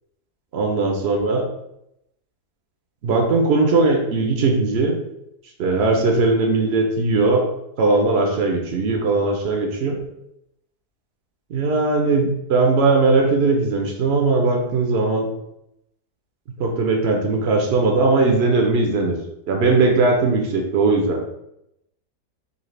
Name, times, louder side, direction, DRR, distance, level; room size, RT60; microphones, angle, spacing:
voice 1, 0.5-1.4 3.0-5.0 5.6-7.5 7.8-10.0 11.5-15.3 16.6-19.2 19.5-21.2, right 3 dB, 65° right, 2 dB, 0.6 m, -19 dB
4.0 x 2.8 x 3.1 m, 0.83 s
omnidirectional pair, 1.8 m